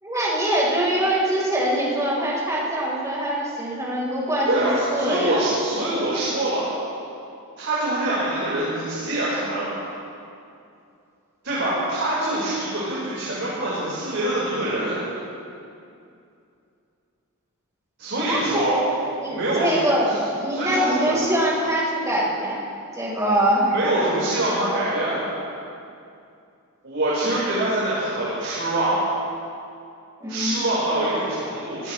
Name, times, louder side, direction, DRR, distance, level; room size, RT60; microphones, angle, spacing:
voice 1, 0.0-5.4 18.2-18.8 19.2-22.6 22.9-23.7 27.2-27.3 30.2-30.6, right 1 dB, 15° right, -5 dB, 4.3 m, -23 dB
voice 2, 4.5-6.7 7.6-9.8 11.4-15.0 18.0-18.8 19.3-19.8 20.1-20.2 20.5-21.1 23.7-25.4 26.8-29.0 30.3-31.9, right 1 dB, 60° right, -9 dB, 4.8 m, -24 dB
23.5 x 18.5 x 3.3 m, 2.6 s
head